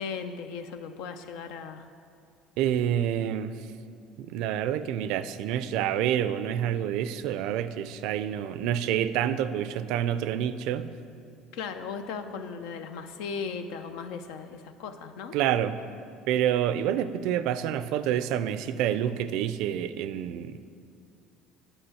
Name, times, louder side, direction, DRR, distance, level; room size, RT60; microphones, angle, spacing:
voice 1, 0.0-1.8 11.5-15.4, left 5 dB, 80° left, 8 dB, 0.6 m, -37 dB
voice 2, 2.6-3.5 4.2-10.9 15.3-15.8 16.3-20.6, right 10 dB, 75° right, 13 dB, 0.4 m, -28 dB
9.0 x 4.9 x 7.7 m, 2.4 s
supercardioid pair, 100°, 0 cm